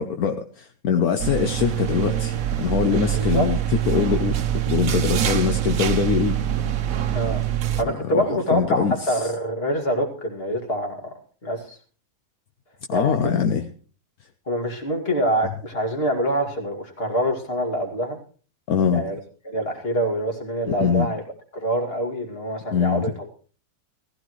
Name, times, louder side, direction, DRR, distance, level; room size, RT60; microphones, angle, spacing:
voice 1, 0.0-3.6 3.9-4.4 4.7-6.4 7.8-9.2 12.9-13.7 18.7-19.1 20.7-21.1 22.7-23.1, left 7 dB, 70° left, 6 dB, 1.3 m, -23 dB
sound 1, 1.2-7.8, right 11 dB, 65° right, 1.3 m, -24 dB
voice 2, 2.9-3.5 7.1-7.4 7.8-11.1 11.4-11.8 12.9-13.3 14.5-18.2 18.9-19.2 19.4-21.2 21.5-23.3, equal, 40° left, 3 dB, 2.6 m, -25 dB
18.0 x 15.5 x 3.1 m, 0.39 s
omnidirectional pair, 1.6 m